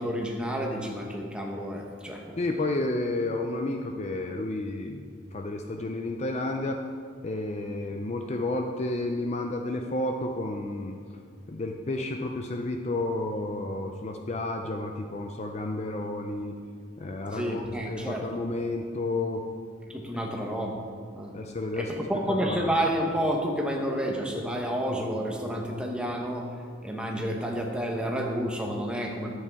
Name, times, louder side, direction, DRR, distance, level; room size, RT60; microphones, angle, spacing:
voice 1, 0.0-2.4 17.3-18.2 19.9-20.8 21.1-21.3 21.8-26.5 26.8-29.3, equal, 5° right, 0 dB, 1.0 m, -30 dB
voice 2, 2.4-5.0 5.3-6.8 7.2-11.0 11.5-16.6 17.0-19.4 20.1-20.2 21.3-22.0 22.3-22.7, left 2 dB, 35° left, 4 dB, 0.5 m, -31 dB
11.0 x 8.4 x 3.5 m, 2.1 s
head